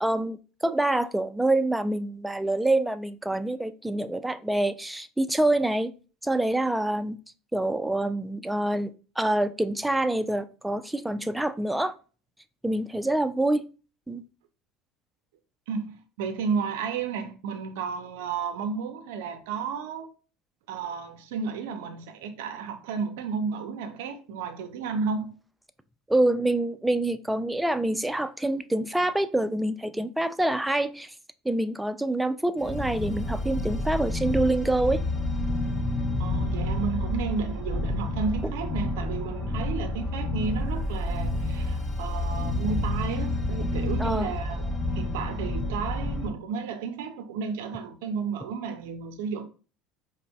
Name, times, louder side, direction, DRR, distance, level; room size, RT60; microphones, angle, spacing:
voice 1, 0.0-5.9 6.2-7.2 7.5-11.9 12.6-13.6 14.1-14.2 26.1-31.1 31.5-35.0 44.0-44.3, right 1 dB, 5° right, 0.3 m, -26 dB
voice 2, 15.7-20.1 20.7-25.4 36.2-49.5, right 5 dB, 80° right, 0.4 m, -32 dB
sound 1, 32.6-46.3, left 1 dB, 25° left, 0.8 m, -29 dB
4.9 x 2.0 x 2.3 m
hypercardioid pair, 85°, 0 cm